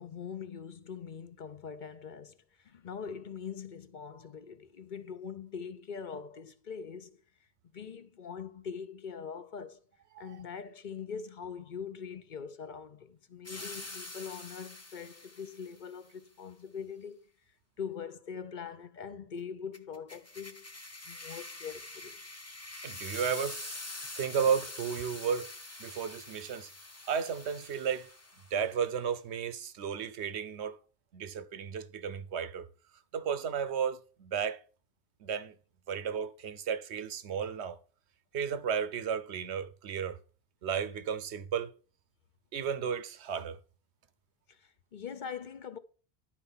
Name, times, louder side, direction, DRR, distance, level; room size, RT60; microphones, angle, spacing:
voice 1, 0.0-7.2 7.7-9.8 10.2-17.2 17.8-20.7 21.1-22.1 44.5-45.8, left 6 dB, 50° left, 0.9 m, -42 dB
sound 1, 13.5-15.8 19.7-28.7, left 2 dB, 15° left, 0.7 m, -45 dB
voice 2, 22.8-23.8 24.2-25.5 25.8-26.7 27.1-28.1 28.5-30.8 31.1-32.7 33.1-34.6 35.2-35.5 35.9-37.8 38.3-40.2 40.6-41.7 42.5-43.6, right 7 dB, 80° right, 1.1 m, -33 dB
11.5 x 4.5 x 5.6 m
omnidirectional pair, 1.1 m